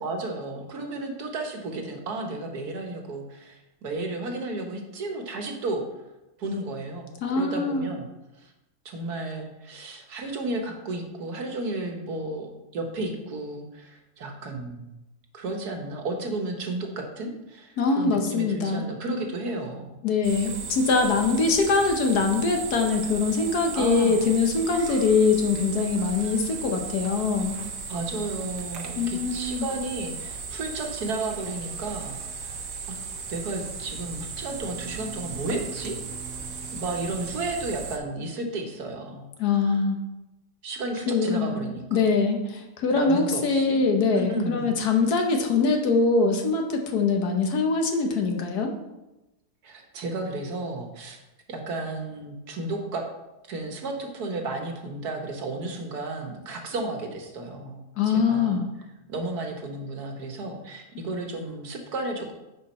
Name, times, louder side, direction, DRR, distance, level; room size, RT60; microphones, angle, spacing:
voice 1, 0.0-5.8 6.4-8.1 8.4-8.5 8.8-14.9 15.3-19.9 23.7-24.2 27.9-32.5 32.9-33.0 33.3-35.9 36.4-39.8 40.6-42.0 42.9-43.8 44.1-44.7 49.6-51.2 51.5-53.0 53.5-57.8 58.1-58.7 59.1-62.3, right 2 dB, 70° right, 3 dB, 1.7 m, -33 dB
voice 2, 7.2-7.9 17.8-18.8 20.0-27.6 29.0-29.7 39.4-40.0 41.1-41.6 41.9-48.7 58.0-58.6, left 4 dB, 70° left, 3 dB, 1.5 m, -23 dB
sound 1, 20.2-38.0, right 5 dB, 90° right, 1.6 m, -36 dB
10.5 x 4.7 x 4.3 m, 0.99 s
omnidirectional pair, 1.7 m